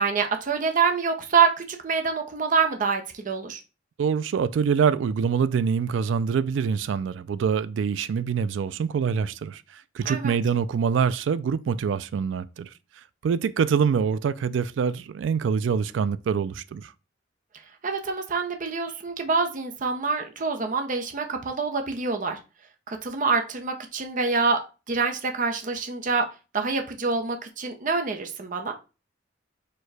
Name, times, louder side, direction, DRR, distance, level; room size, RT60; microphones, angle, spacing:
voice 1, 0.0-3.6 10.0-10.4 17.8-22.4 22.9-24.6 24.9-26.3 26.5-28.7, right 5 dB, 45° right, 0.6 m, -26 dB
voice 2, 4.0-12.7 13.2-16.9, right 6 dB, 80° right, 0.3 m, -25 dB
4.5 x 2.2 x 4.7 m
head